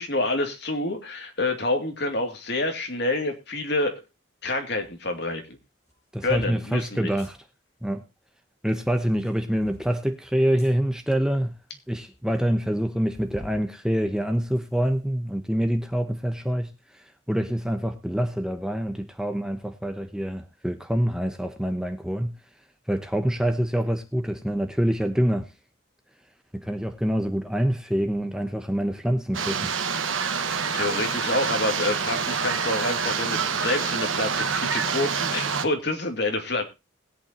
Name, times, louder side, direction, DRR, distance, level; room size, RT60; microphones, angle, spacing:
voice 1, 0.0-4.0 4.4-5.6 6.2-7.1 30.7-36.6, left 2 dB, 55° left, 2.6 m, -27 dB
sound 1, 4.8-4.9 5.8-6.5 7.1-7.3 9.0-9.9 10.6-10.7 11.4-11.5 11.7-11.8 12.1-12.2 13.1-13.6 14.1-15.0, equal, 15° left, 6.5 m, -47 dB
voice 2, 6.1-7.4 7.8-8.0 8.6-11.5 11.9-22.4 22.9-25.5 26.5-29.7, equal, 5° right, 0.9 m, -26 dB
sound 2, 29.3-35.7, right 6 dB, 80° right, 1.4 m, -27 dB
21.0 x 8.5 x 2.9 m
head